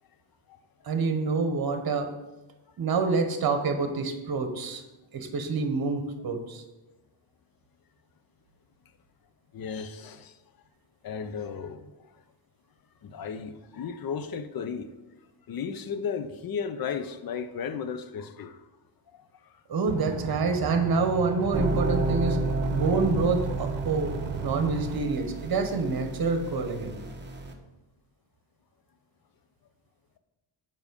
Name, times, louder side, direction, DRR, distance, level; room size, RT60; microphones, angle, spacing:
voice 1, 0.8-2.1 2.8-4.8 5.1-6.6 19.7-22.4 22.7-24.1 24.4-26.9, right 4 dB, 50° right, 1.2 m, -27 dB
voice 2, 9.5-10.4 11.0-12.2 13.0-14.9 15.5-18.7 19.1-19.6, left 6 dB, 50° left, 0.6 m, -35 dB
sound 1, 19.9-25.0, right 6 dB, 65° right, 0.8 m, -36 dB
sound 2, 21.5-27.5, right 2 dB, 25° right, 0.9 m, -31 dB
7.2 x 5.4 x 5.2 m
cardioid pair, 120°, 47 cm